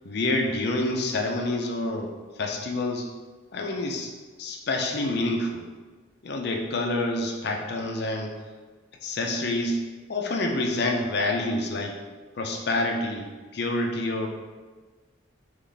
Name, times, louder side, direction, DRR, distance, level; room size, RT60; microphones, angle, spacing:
voice 1, 0.0-3.1 3.5-4.1 4.4-5.6 6.2-8.4 9.0-9.8 10.1-12.0 12.4-14.3, left 2 dB, 55° left, 2 dB, 0.5 m, -27 dB
3.9 x 3.1 x 3.3 m, 1.4 s
head